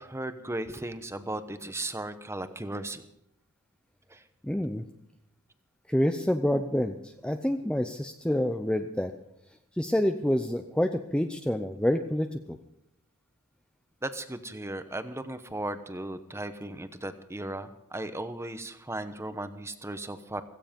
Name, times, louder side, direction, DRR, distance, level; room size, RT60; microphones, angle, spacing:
voice 1, 0.0-3.0 4.1-4.2 14.0-20.4, right 1 dB, 10° right, 10 dB, 1.0 m, -36 dB
voice 2, 4.4-4.8 5.9-9.1 9.8-12.6, equal, 5° left, 6 dB, 0.7 m, -27 dB
16.5 x 16.0 x 5.3 m, 0.79 s
head